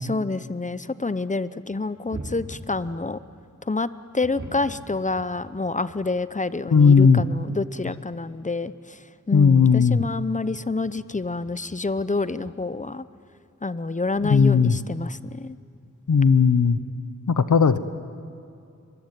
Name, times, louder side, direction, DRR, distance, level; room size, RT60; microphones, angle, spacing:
voice 1, 0.0-3.2 3.6-13.0 13.6-15.6, left 3 dB, 25° left, 14 dB, 0.7 m, -28 dB
sound 1, 1.7-3.2 4.2-6.3 6.6-6.7 7.2-7.3 7.6-8.2 9.6-12.2 12.4-12.7 14.0-15.4 16.6-16.7 16.9-17.1, right 1 dB, 50° right, 6.0 m, -44 dB
voice 2, 6.7-7.2 9.3-10.0 14.2-14.8 16.1-16.8 17.4-17.8, left 5 dB, 75° left, 12 dB, 1.0 m, -16 dB
23.5 x 22.5 x 9.0 m, 2.5 s
wide cardioid pair, 75°, 30 cm